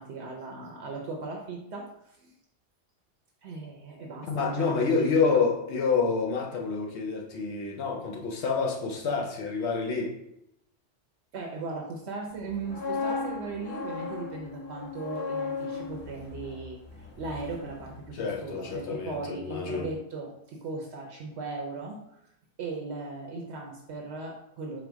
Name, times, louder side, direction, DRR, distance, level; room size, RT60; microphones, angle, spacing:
voice 1, 0.0-2.3 3.4-5.3 11.3-22.2 22.6-24.8, right 3 dB, 70° right, 0.9 m, -38 dB
voice 2, 4.3-10.2 18.1-19.9, left 4 dB, 70° left, 0.9 m, -28 dB
sound 1, 12.4-18.4 18.7-18.9, left 4 dB, 15° left, 0.3 m, -36 dB
4.6 x 2.2 x 3.4 m
omnidirectional pair, 1.2 m